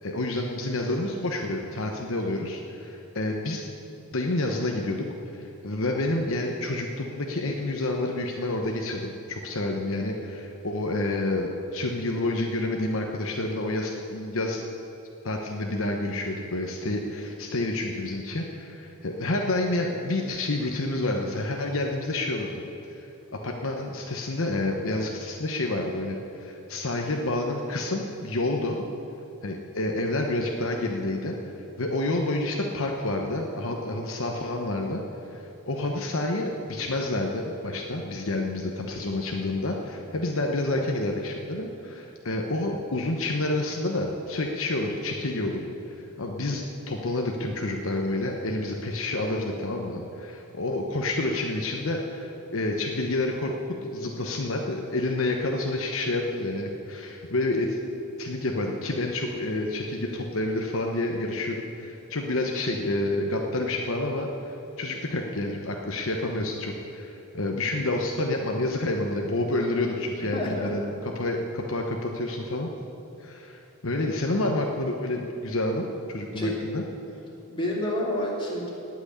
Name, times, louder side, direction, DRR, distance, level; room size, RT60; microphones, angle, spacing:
voice 1, 0.0-3.7 4.1-5.0 5.3-14.6 15.2-22.5 22.9-23.0 23.4-28.9 29.4-31.4 31.8-35.0 35.3-57.8 58.2-72.7 73.2-76.8, left 2 dB, 65° left, 1 dB, 1.1 m, -29 dB
voice 2, 70.3-70.7 76.3-76.6 77.5-78.7, left 1 dB, 25° left, -4 dB, 2.9 m, -28 dB
18.5 x 6.2 x 8.7 m, 2.9 s
head